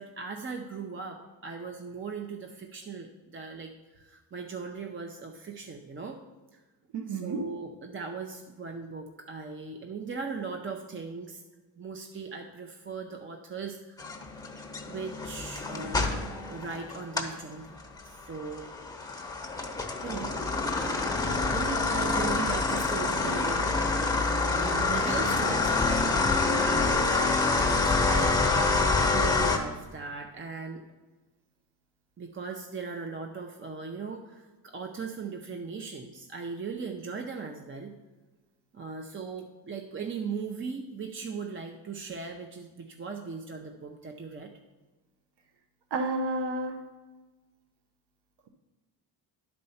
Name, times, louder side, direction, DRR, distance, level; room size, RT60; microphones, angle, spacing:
voice 1, 0.0-6.2 6.5-6.6 7.1-11.4 11.8-14.1 14.9-16.2 16.5-17.8 18.0-18.7 19.8-20.5 20.8-20.9 21.2-23.7 24.1-28.8 29.1-30.8 32.2-37.9 38.7-44.5, right 5 dB, 30° right, 3 dB, 0.6 m, -39 dB
voice 2, 6.9-7.4 45.9-46.8, right 2 dB, 80° right, 4 dB, 1.0 m, -30 dB
sound 1, 14.0-17.4 17.8-29.6, left 3 dB, 10° left, 1.0 m, -27 dB
10.5 x 4.3 x 5.6 m, 1.2 s
cardioid pair, 125°, 40 cm